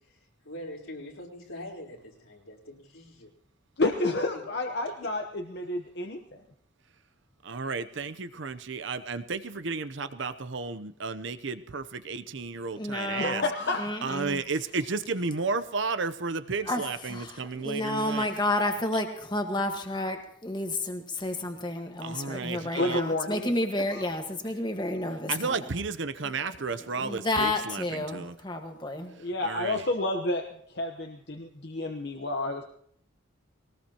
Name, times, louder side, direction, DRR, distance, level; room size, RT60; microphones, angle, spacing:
voice 1, 0.4-3.3 4.0-4.4, left 1 dB, 90° left, -2 dB, 4.0 m, -43 dB
voice 2, 3.8-6.4 13.2-14.0 22.8-23.5 23.9-24.0 29.2-30.4 30.7-32.6, left 2 dB, 55° left, 3 dB, 1.0 m, -30 dB
voice 3, 7.4-13.4 14.0-18.3 22.0-23.0 25.3-28.3 29.4-29.8, right 4 dB, 60° right, 11 dB, 0.7 m, -33 dB
voice 4, 12.8-13.4 13.8-14.4 16.7-16.8 17.1-25.5 27.0-29.1, left 1 dB, 20° left, 4 dB, 1.5 m, -31 dB
21.5 x 19.0 x 2.9 m, 0.65 s
head